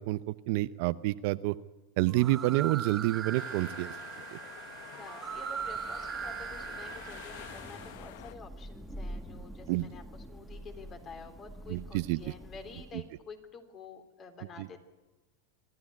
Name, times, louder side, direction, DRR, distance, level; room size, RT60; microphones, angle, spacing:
voice 1, 0.0-1.6 2.0-3.9 4.3-4.4 9.7-9.9 11.7-12.2 14.6-14.7, right 18 dB, 60° right, 14 dB, 0.7 m, -28 dB
sound 1, 2.1-7.9, right 7 dB, 25° right, 2.6 m, -40 dB
sound 2, 3.3-8.3, left 12 dB, 65° left, 1.1 m, -48 dB
voice 2, 5.0-14.8, left 5 dB, 35° left, 7 dB, 3.5 m, -49 dB
Thunder / Rain, 5.3-13.3, equal, 5° right, 1.4 m, -47 dB
26.0 x 12.5 x 9.6 m, 1.1 s
hypercardioid pair, 110°, 0 cm